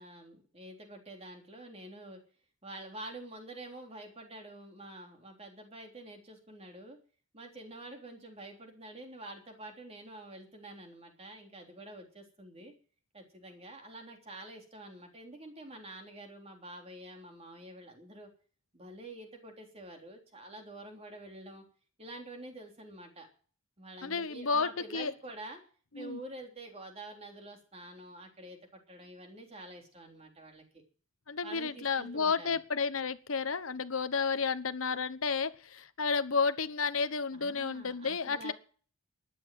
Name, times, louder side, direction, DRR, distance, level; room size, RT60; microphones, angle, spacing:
voice 1, 0.0-2.2 2.6-7.0 7.3-12.7 13.1-18.3 18.7-21.6 22.0-23.3 23.8-25.6 25.9-30.8 31.4-32.6 37.3-38.5, right 1 dB, 30° right, 3 dB, 3.4 m, -47 dB
voice 2, 24.0-25.1 25.9-26.2 31.3-38.5, left 5 dB, 80° left, 12 dB, 1.1 m, -31 dB
13.5 x 10.5 x 7.7 m, 0.41 s
head